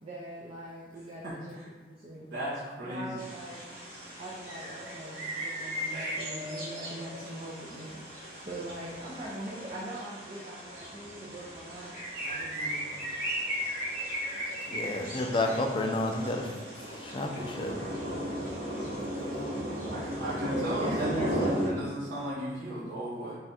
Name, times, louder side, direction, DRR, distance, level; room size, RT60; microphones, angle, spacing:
voice 1, 0.0-2.2 2.8-3.7 4.2-11.9 12.2-13.0 15.4-15.6 19.1-19.3 19.7-21.7, right 1 dB, 35° right, -5 dB, 0.5 m, -42 dB
voice 2, 1.2-1.7 2.3-3.1 19.8-23.3, right 1 dB, 90° right, -11 dB, 0.8 m, -35 dB
sound 1, 3.2-21.7, equal, 55° right, 1.0 m, -36 dB
voice 3, 14.6-17.7, left 2 dB, 30° left, 2 dB, 0.4 m, -31 dB
3.4 x 2.4 x 4.1 m, 1.3 s
head